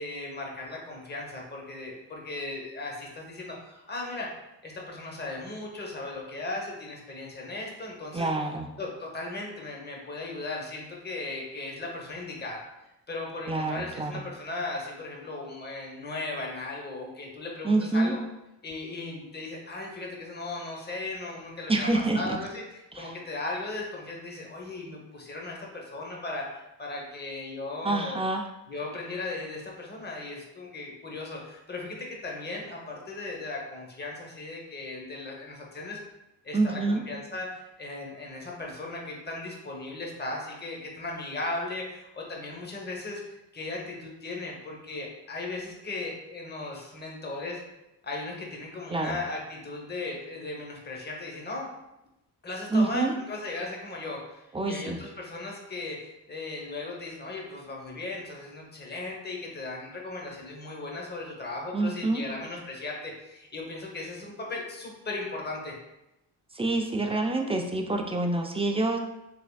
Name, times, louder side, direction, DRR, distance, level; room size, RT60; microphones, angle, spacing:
voice 1, 0.0-4.3 4.6-8.3 8.8-12.6 13.1-18.2 18.6-28.2 28.7-36.0 36.4-47.6 48.0-51.7 52.4-65.8, left 2 dB, 25° left, -1 dB, 0.9 m, -37 dB
voice 2, 8.1-8.7 13.5-14.2 17.6-18.1 21.7-22.4 23.0-23.1 27.8-28.5 36.5-37.0 48.9-49.2 52.7-53.1 54.5-55.0 61.7-62.2 66.5-69.0, right 2 dB, 15° right, 3 dB, 0.3 m, -27 dB
3.5 x 3.2 x 2.3 m, 0.92 s
cardioid pair, 65°, 42 cm